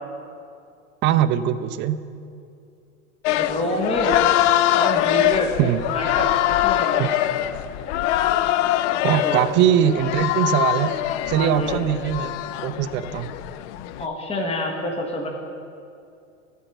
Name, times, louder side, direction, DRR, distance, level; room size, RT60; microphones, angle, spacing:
voice 1, 1.0-2.0 5.6-5.8 7.0-7.1 9.0-11.0 11.3-13.3, right 10 dB, 30° right, 12 dB, 0.4 m, -21 dB
sound 1, 3.2-14.1, left 13 dB, 55° left, 0.5 m, -23 dB
voice 2, 3.3-4.2 4.7-5.5 5.8-7.2 9.2-9.4 11.3-11.8 14.0-15.3, left 1 dB, 15° left, 0 dB, 1.4 m, -27 dB
13.5 x 4.6 x 7.9 m, 2.5 s
hypercardioid pair, 100°, 43 cm